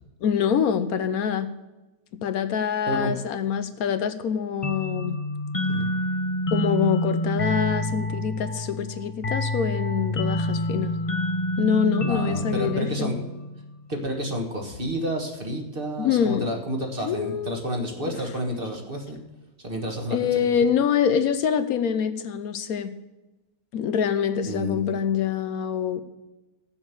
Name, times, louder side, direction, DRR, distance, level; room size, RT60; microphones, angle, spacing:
voice 1, 0.2-1.5 2.2-5.2 6.5-10.9 11.6-13.1 16.0-16.5 17.0-17.6 18.0-18.1 20.1-22.9 23.7-26.0, left 8 dB, 70° left, 11 dB, 1.1 m, -25 dB
sound 1, 4.6-14.0, left 1 dB, 30° left, 0.7 m, -28 dB
voice 2, 12.1-13.2 13.9-19.2 19.6-20.5 24.4-24.9, equal, 35° right, 2 dB, 1.6 m, -30 dB
14.0 x 7.1 x 6.8 m, 1.1 s
omnidirectional pair, 1.6 m